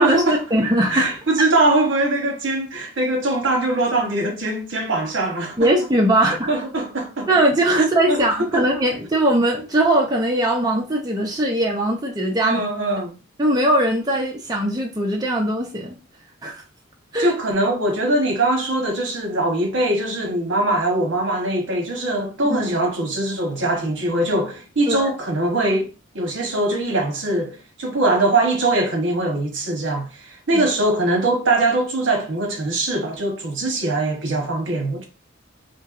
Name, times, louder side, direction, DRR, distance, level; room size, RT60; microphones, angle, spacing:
voice 1, 0.0-0.4 0.9-5.7 6.5-7.3 8.1-8.2 8.5-8.6 12.4-13.2 17.2-25.9 26.1-35.1, right 2 dB, 70° right, 1.0 m, -22 dB
voice 2, 0.5-1.1 5.6-6.5 7.3-12.6 13.4-16.0 16.4-16.6 17.1-17.3 22.5-22.6 24.9-25.1 30.5-30.7, right 1 dB, 20° right, 0.5 m, -20 dB
4.4 x 2.7 x 2.5 m
head